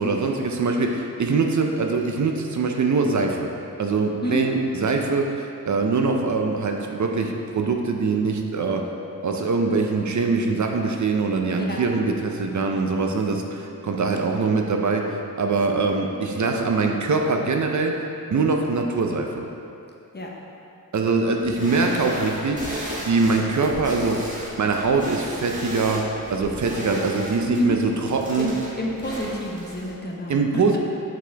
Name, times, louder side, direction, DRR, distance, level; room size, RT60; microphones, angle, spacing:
voice 1, 0.0-3.5 3.8-8.9 9.2-18.0 18.3-19.5 20.9-24.3 24.6-28.5 30.3-30.8, right 4 dB, 55° right, 3 dB, 0.5 m, -23 dB
voice 2, 4.2-4.5 11.6-11.8 20.1-20.3 27.5-27.8 28.4-28.5 28.7-30.6, equal, 30° left, -1 dB, 0.8 m, -28 dB
sound 1, 21.4-29.9, equal, 20° right, 1.3 m, -36 dB
7.4 x 4.1 x 3.4 m, 2.6 s
wide cardioid pair, 95°, 34 cm